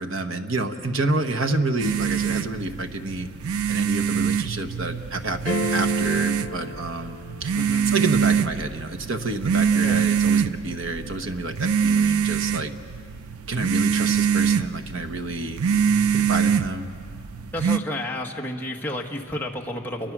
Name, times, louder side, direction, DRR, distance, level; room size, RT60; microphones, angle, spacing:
voice 1, 0.0-3.3 3.7-7.5 7.9-12.7 13.5-15.6 16.1-16.9, right 2 dB, 65° right, 7 dB, 1.2 m, -28 dB
sound 1, 1.8-17.8, right 7 dB, 90° right, 0.5 m, -24 dB
sound 2, 5.5-7.7, left 3 dB, 40° left, 1.4 m, -32 dB
voice 2, 7.6-8.0 9.8-10.1 17.5-20.1, left 1 dB, 10° left, -1 dB, 1.5 m, -31 dB
29.5 x 23.5 x 6.2 m, 2.4 s
head